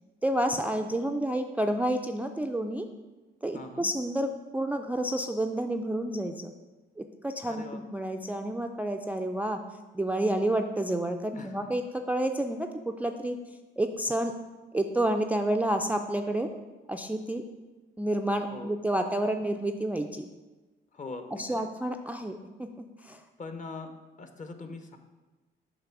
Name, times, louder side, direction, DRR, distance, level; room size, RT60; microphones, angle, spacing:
voice 1, 0.2-2.9 3.4-6.5 7.0-9.6 9.9-13.4 13.8-14.3 14.7-16.5 16.9-17.4 18.0-20.3 21.3-23.2, right 1 dB, 10° right, 5 dB, 0.3 m, -29 dB
voice 2, 3.5-3.9 7.5-7.8 11.4-11.8 18.5-18.8 20.9-21.7 23.4-23.9 24.2-25.0, left 3 dB, 40° left, 7 dB, 0.8 m, -42 dB
7.6 x 3.3 x 5.9 m, 1.2 s
cardioid pair, 90°, 20 cm